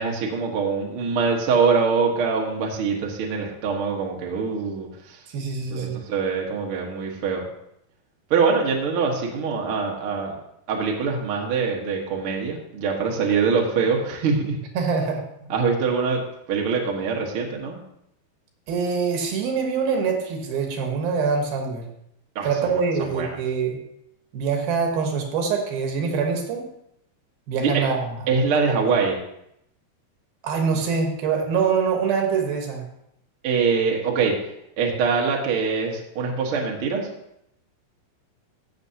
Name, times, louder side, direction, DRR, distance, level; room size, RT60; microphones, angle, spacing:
voice 1, 0.0-5.2 5.7-7.4 8.3-10.3 10.7-14.6 15.5-16.2 16.5-17.8 22.3-23.4 27.6-27.9 28.3-29.2 33.4-34.3 34.8-37.1, right 5 dB, 60° right, -1 dB, 1.5 m, -24 dB
voice 2, 5.3-6.0 14.7-15.2 18.7-21.9 22.4-23.8 24.3-26.7 27.5-28.2 28.5-29.0 30.4-32.9, right 5 dB, 75° right, 2 dB, 3.0 m, -24 dB
15.5 x 6.7 x 2.8 m, 0.78 s
omnidirectional pair, 4.4 m